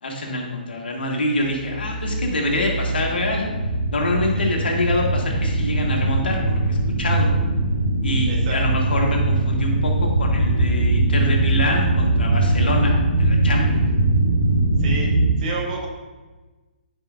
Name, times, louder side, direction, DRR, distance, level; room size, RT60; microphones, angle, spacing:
voice 1, 0.0-3.4 3.9-7.3 8.0-13.8, left 1 dB, 75° left, 0 dB, 1.5 m, -25 dB
sound 1, 1.4-15.3, right 2 dB, 80° right, 1.4 m, -21 dB
voice 2, 8.3-8.6 14.8-15.1 15.4-15.9, right 4 dB, 50° right, -1 dB, 1.6 m, -30 dB
9.6 x 5.0 x 2.5 m, 1.2 s
figure-of-eight pair, 135°, 5 cm